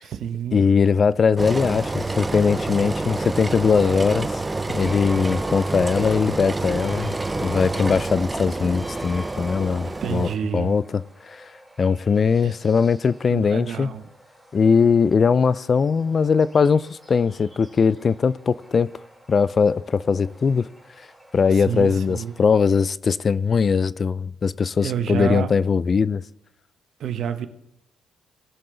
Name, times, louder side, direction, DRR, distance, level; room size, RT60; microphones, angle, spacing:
voice 1, 0.0-0.7 9.8-10.7 12.4-12.6 13.3-14.1 21.5-22.3 24.8-25.6 27.0-27.5, right 9 dB, 70° right, 1.0 m, -29 dB
voice 2, 0.5-4.4 4.7-7.1 7.4-11.5 11.8-13.9 14.5-18.9 19.3-20.7 21.3-26.2, left 5 dB, 40° left, 0.4 m, -20 dB
Engine, 1.4-10.4, right 2 dB, 20° right, 0.6 m, -28 dB
sound 1, 4.2-22.4, right 1 dB, 5° left, 4.5 m, -46 dB
19.5 x 6.7 x 3.9 m
cardioid pair, 90°, 0 cm